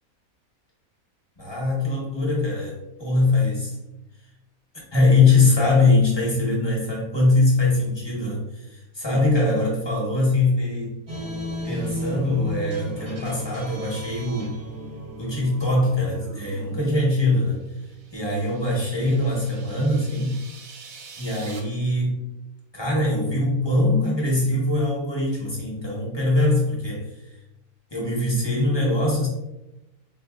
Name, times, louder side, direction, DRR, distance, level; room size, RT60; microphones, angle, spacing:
voice 1, 1.4-3.8 4.9-11.0 11.6-14.6 15.2-17.6 18.1-20.4 21.2-22.2 22.7-27.4 27.9-29.3, left 2 dB, 25° left, -4 dB, 0.6 m, -22 dB
sound 1, 11.1-18.4, equal, 35° right, 0.6 m, -35 dB
sound 2, 17.4-21.6, right 5 dB, 75° right, 1.0 m, -46 dB
3.9 x 2.6 x 2.3 m, 0.95 s
omnidirectional pair, 1.6 m